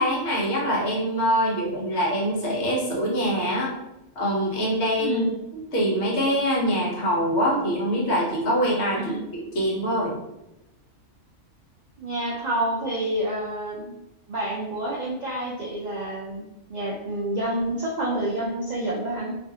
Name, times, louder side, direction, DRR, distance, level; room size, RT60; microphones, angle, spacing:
voice 1, 0.0-3.7 4.2-5.2 5.5-10.1, equal, 60° left, -3 dB, 1.0 m, -24 dB
voice 2, 5.0-5.3 9.0-9.2 12.0-14.0 14.3-16.4 16.7-19.3, right 1 dB, 85° right, -4 dB, 0.3 m, -28 dB
2.5 x 2.4 x 2.7 m, 0.91 s
omnidirectional pair, 1.4 m